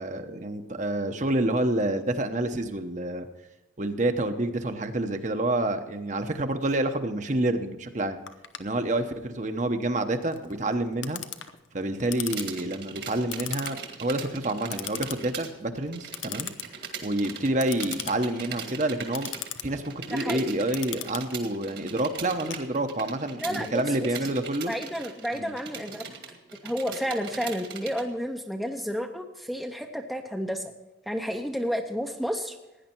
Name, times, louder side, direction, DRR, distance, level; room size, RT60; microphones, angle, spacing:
voice 1, 0.0-3.3 3.8-8.2 8.6-11.2 11.7-16.5 16.8-19.3 19.6-24.7 25.3-25.5, right 1 dB, 40° right, 7 dB, 1.0 m, -28 dB
Clock, 8.3-23.2, left 11 dB, 80° left, 0.8 m, -40 dB
sound 1, 12.3-15.5 15.8-28.0, right 6 dB, 60° right, 1.9 m, -40 dB
voice 2, 20.1-20.4 23.4-24.1 24.7-26.0 26.6-30.7 31.1-32.6, equal, ahead, 4 dB, 0.7 m, -31 dB
16.5 x 10.0 x 4.5 m, 1.0 s
head